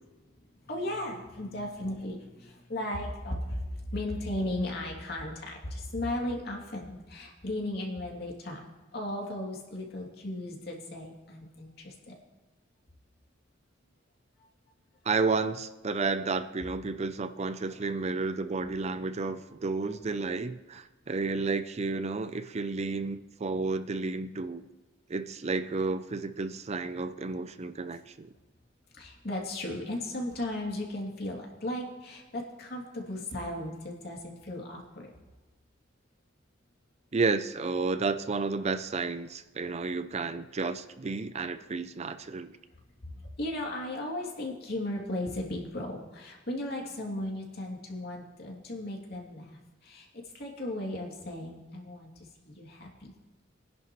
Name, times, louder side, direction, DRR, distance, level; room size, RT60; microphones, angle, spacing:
voice 1, 0.7-8.6 8.9-12.1 17.8-17.9 19.8-19.9 29.0-35.1 43.4-49.5 49.8-50.1 50.3-52.1 52.5-53.1, left 1 dB, 60° left, -1 dB, 2.7 m, -36 dB
voice 2, 15.1-24.7 25.1-28.3 37.1-42.6, right 4 dB, 35° right, 11 dB, 0.5 m, -31 dB
22.5 x 10.5 x 3.1 m, 1.1 s
head